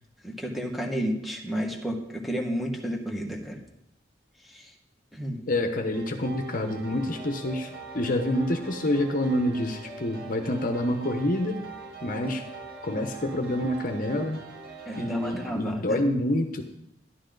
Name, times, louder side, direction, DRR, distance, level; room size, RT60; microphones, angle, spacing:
voice 1, 0.2-3.6 4.5-4.7 5.1-5.4 14.9-16.0, equal, ahead, 1 dB, 1.6 m, -31 dB
voice 2, 5.5-11.6 12.0-12.5 12.8-14.4 15.0-16.6, left 1 dB, 50° left, 5 dB, 1.0 m, -27 dB
sound 1, 5.9-15.5, right 3 dB, 90° right, 4.2 m, -43 dB
12.5 x 11.5 x 4.0 m, 0.79 s
head